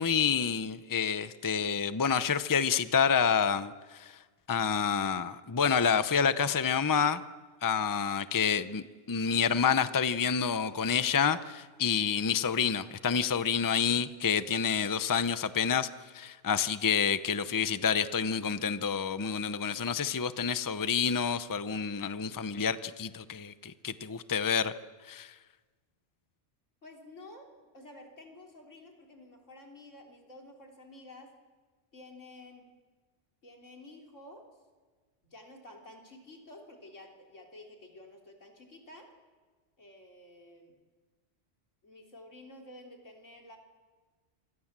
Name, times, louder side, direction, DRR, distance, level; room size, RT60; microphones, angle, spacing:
voice 1, 0.0-4.1 4.5-7.2 7.6-15.9 16.1-24.7 25.1-25.3, left 6 dB, 20° left, 0.7 m, -28 dB
voice 2, 26.8-27.5 27.7-31.3 31.9-32.6 33.4-34.5 35.2-39.1 39.8-40.7 41.8-43.6, left 1 dB, 90° left, 4.0 m, -51 dB
27.5 x 26.0 x 7.5 m
omnidirectional pair, 1.2 m